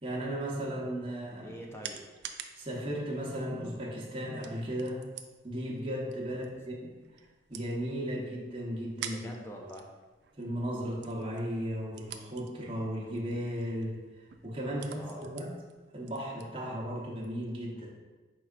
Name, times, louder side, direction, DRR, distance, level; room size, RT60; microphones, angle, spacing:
voice 1, 0.0-1.6 2.6-5.0 5.4-6.9 7.5-9.3 10.4-15.5 15.9-17.9, equal, 30° right, -4 dB, 0.8 m, -35 dB
sound 1, 1.0-17.4, right 8 dB, 70° right, 0.3 m, -50 dB
voice 2, 1.4-2.0 6.2-6.5 9.0-9.9 14.7-15.3, equal, 15° left, 0 dB, 0.4 m, -46 dB
4.8 x 4.4 x 2.4 m, 1.3 s
head